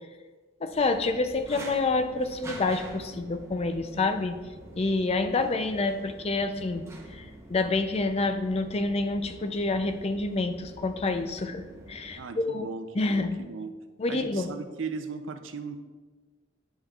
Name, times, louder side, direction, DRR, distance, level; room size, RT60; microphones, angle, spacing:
voice 1, 0.6-4.4 4.8-6.9 7.1-12.7 13.0-13.3 14.0-14.5, left 3 dB, 30° left, 8 dB, 0.4 m, -28 dB
sound 1, 0.7-12.2, right 1 dB, 15° right, 0.8 m, -46 dB
voice 2, 12.2-13.7 14.1-15.8, right 4 dB, 85° right, 8 dB, 0.5 m, -37 dB
10.0 x 5.5 x 2.4 m, 1.4 s
head